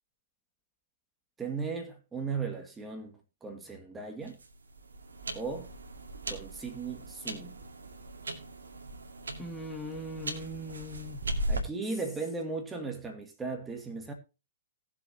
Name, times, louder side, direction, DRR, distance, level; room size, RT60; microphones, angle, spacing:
voice 1, 1.4-4.4 5.3-5.7 6.3-7.6 11.5-14.1, right 4 dB, 15° right, 2.0 m, -37 dB
sound 1, 4.2-11.6, right 1 dB, 80° right, 2.2 m, -38 dB
voice 2, 9.4-11.2, equal, 5° left, 2.1 m, -40 dB
18.5 x 7.2 x 2.8 m
hypercardioid pair, 120°, 0 cm